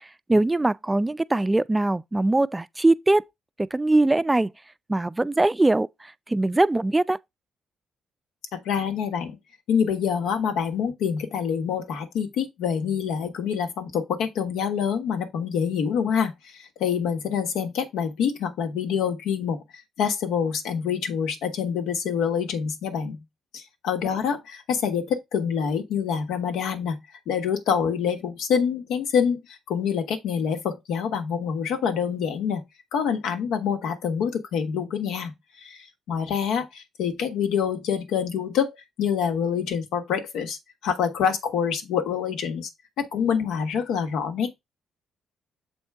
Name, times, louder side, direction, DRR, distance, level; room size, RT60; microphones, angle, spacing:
voice 1, 0.3-3.2 3.7-4.5 4.9-5.9 6.3-7.2, right 2 dB, 15° right, 0.4 m, -21 dB
voice 2, 8.5-9.4 9.7-19.6 20.0-23.2 23.5-27.0 27.3-32.6 32.9-35.3 35.6-42.7 43.0-44.6, left 7 dB, 85° left, 1.3 m, -26 dB
7.1 x 4.4 x 3.5 m
cardioid pair, 90°, 0 cm